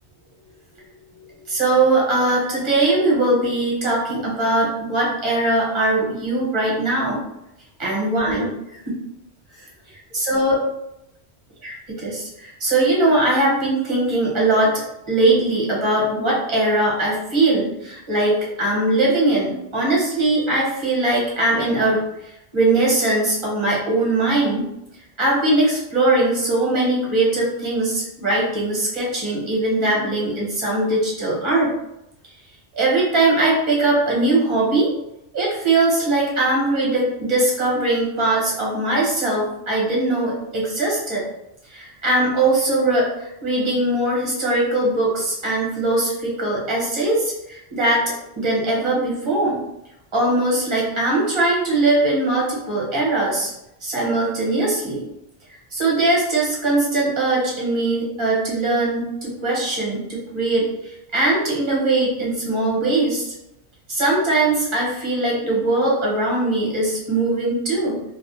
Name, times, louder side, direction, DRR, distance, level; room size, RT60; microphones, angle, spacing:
voice 1, 1.5-7.2 7.8-9.0 10.1-10.6 11.6-24.7 25.2-31.7 32.7-34.9 35.3-41.2 41.7-48.0 48.4-49.6 50.1-53.5 53.8-55.0 55.7-63.3 63.9-68.0, right 2 dB, 30° right, -5 dB, 0.8 m, -20 dB
2.4 x 2.0 x 2.9 m, 0.86 s
omnidirectional pair, 1.1 m